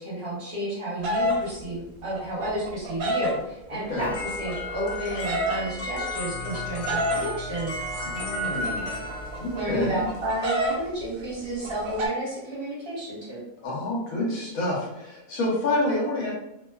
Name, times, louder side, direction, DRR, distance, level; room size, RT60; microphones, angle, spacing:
voice 1, 0.0-4.1 4.4-7.8 9.5-13.4, right 1 dB, 45° right, -8 dB, 1.1 m, -31 dB
sound 1, 1.0-1.4 2.1-3.3 4.3-5.6 6.5-7.2 8.2-10.8 11.0-11.1 11.3-12.1, equal, 80° right, 1.0 m, -28 dB
sound 2, 4.0-10.3, equal, 55° left, 0.8 m, -33 dB
voice 2, 8.0-9.1 9.4-10.0 13.6-16.3, left 1 dB, 80° left, -4 dB, 1.3 m, -28 dB
2.9 x 2.2 x 2.2 m, 0.88 s
omnidirectional pair, 1.5 m